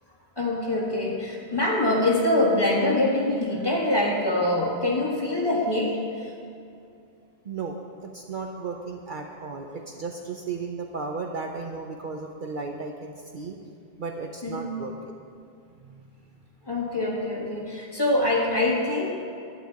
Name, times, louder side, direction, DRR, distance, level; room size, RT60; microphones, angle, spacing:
voice 1, 0.4-6.0 14.4-14.7 16.7-19.1, left 1 dB, 20° left, -4 dB, 1.8 m, -24 dB
voice 2, 7.4-13.6 14.0-14.9 15.8-16.0, right 4 dB, 55° right, 3 dB, 0.7 m, -35 dB
11.5 x 8.7 x 4.6 m, 2.5 s
omnidirectional pair, 1.1 m